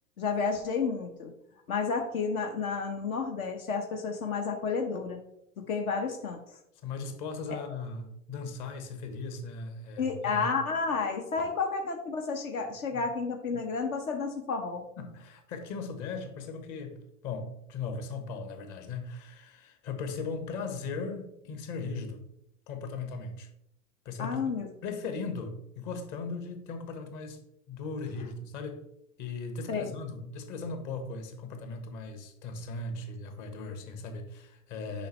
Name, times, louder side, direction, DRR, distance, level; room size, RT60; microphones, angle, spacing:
voice 1, 0.2-1.3 1.7-5.2 5.7-6.4 10.0-14.8 24.2-24.7 29.7-29.9, left 5 dB, 70° left, 1.1 m, -31 dB
voice 2, 6.8-10.4 11.4-11.5 12.9-13.0 15.0-22.2 22.7-23.5 24.0-24.4 24.8-27.4 27.7-28.8 29.2-35.1, left 4 dB, 45° left, 1.4 m, -38 dB
6.8 x 5.2 x 3.2 m
hypercardioid pair, 95°, 43 cm